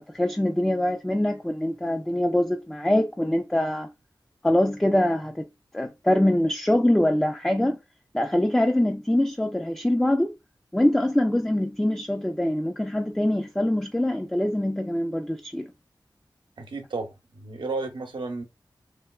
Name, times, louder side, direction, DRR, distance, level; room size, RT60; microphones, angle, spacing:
voice 1, 0.0-3.9 4.4-5.5 5.7-7.8 8.1-10.3 10.7-15.7, left 1 dB, 5° left, 0.3 m, -24 dB
voice 2, 16.6-18.4, right 3 dB, 85° right, 0.8 m, -33 dB
3.1 x 2.9 x 2.3 m
wide cardioid pair, 65°, 8 cm